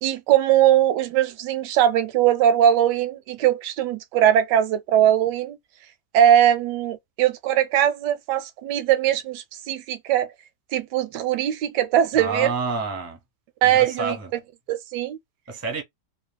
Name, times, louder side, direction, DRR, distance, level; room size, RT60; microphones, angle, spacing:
voice 1, 0.0-5.6 6.1-10.3 10.7-12.5 13.6-14.2 14.7-15.2, right 10 dB, 80° right, 1.2 m, -20 dB
voice 2, 12.2-13.2 13.6-14.3 15.5-15.8, right 3 dB, 15° right, 0.5 m, -28 dB
3.0 x 2.7 x 2.2 m
omnidirectional pair, 1.8 m